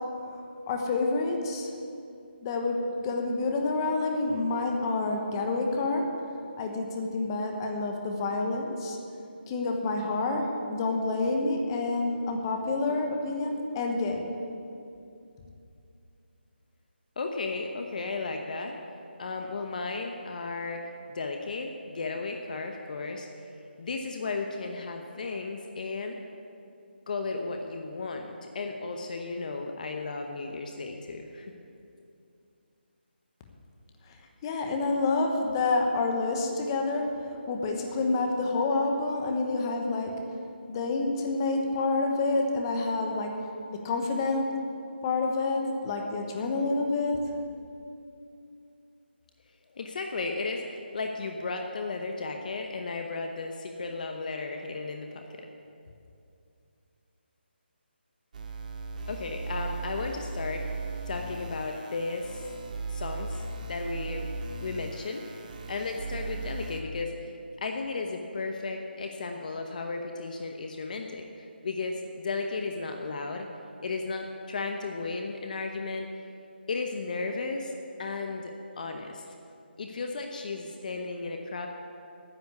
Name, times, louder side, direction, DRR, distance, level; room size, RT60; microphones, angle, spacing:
voice 1, 0.7-1.7 2.4-6.0 6.6-9.0 9.5-10.4 10.7-14.3 34.4-37.1 37.5-40.1 40.7-43.3 43.7-44.5 45.0-47.2, left 3 dB, 25° left, 3 dB, 1.1 m, -28 dB
voice 2, 17.2-18.8 19.2-20.8 21.1-23.3 23.8-26.2 27.1-31.5 49.7-55.5 59.1-60.6 61.1-62.5 62.9-64.3 64.6-73.5 73.8-76.1 76.7-77.7 78.0-79.3 79.8-81.7, left 3 dB, 45° left, 4 dB, 0.9 m, -34 dB
sound 1, 58.3-66.8, right 3 dB, 45° right, 1.2 m, -37 dB
9.8 x 9.4 x 8.2 m, 2.6 s
figure-of-eight pair, 160°, 6 cm